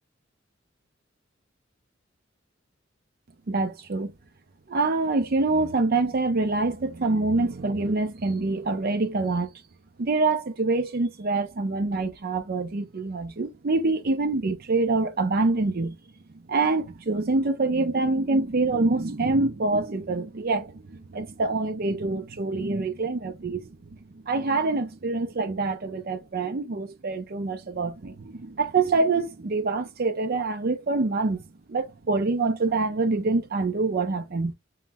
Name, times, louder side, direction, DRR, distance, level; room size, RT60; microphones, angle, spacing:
voice 1, 3.5-4.1 4.7-9.5 10.0-16.0 16.5-23.7 24.1-31.4 31.7-34.5, right 3 dB, 50° right, 0.6 m, -25 dB
5.6 x 2.2 x 2.3 m
head